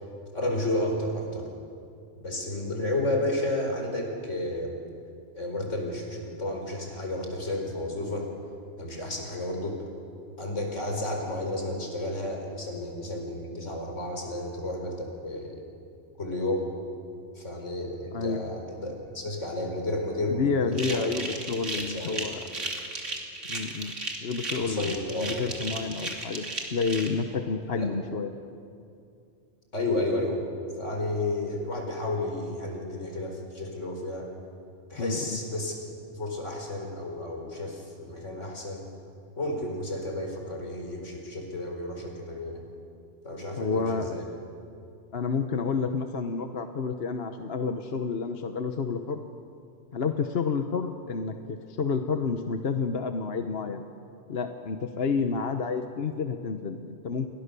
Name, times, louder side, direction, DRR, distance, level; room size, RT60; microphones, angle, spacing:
voice 1, 0.3-1.4 2.2-4.7 5.3-8.3 8.8-9.8 10.4-15.6 16.2-16.7 17.3-21.1 21.7-22.2 24.6-25.3 27.7-27.9 29.7-30.4 30.8-34.3 34.9-35.8 36.1-38.8 39.4-42.6 43.2-44.2, left 1 dB, 85° left, 2 dB, 4.7 m, -32 dB
voice 2, 18.1-18.4 20.3-22.5 23.5-23.9 24.2-28.3 35.0-35.4 43.6-44.2 45.1-49.2 49.9-53.8 54.3-57.3, left 5 dB, 55° left, 7 dB, 1.2 m, -30 dB
sound 1, 20.7-27.1, right 2 dB, 90° right, 3.3 m, -35 dB
29.5 x 22.5 x 6.9 m, 2.5 s
omnidirectional pair, 1.2 m